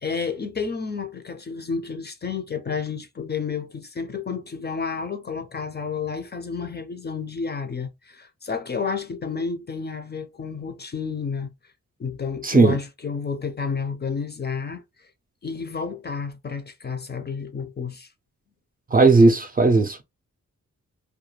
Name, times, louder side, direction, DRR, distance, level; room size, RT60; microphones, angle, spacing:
voice 1, 0.0-11.5 12.0-14.8 15.4-18.1, left 5 dB, 35° left, 0.4 m, -30 dB
voice 2, 12.4-12.8 18.9-20.0, right 3 dB, 30° right, 0.4 m, -16 dB
2.3 x 2.2 x 2.9 m
wide cardioid pair, 110°, 31 cm